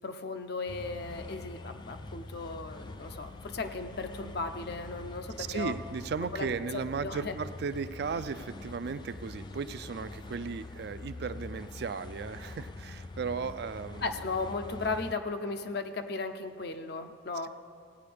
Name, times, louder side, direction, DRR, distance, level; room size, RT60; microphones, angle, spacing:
voice 1, 0.0-5.7 6.3-6.5 7.0-7.4 14.0-17.5, left 3 dB, 60° left, 8 dB, 0.6 m, -36 dB
sound 1, 0.7-15.1, left 2 dB, 25° left, 0.3 m, -44 dB
voice 2, 5.4-14.2 17.4-17.5, right 5 dB, 60° right, 12 dB, 0.4 m, -36 dB
17.0 x 9.2 x 3.4 m, 2.2 s
head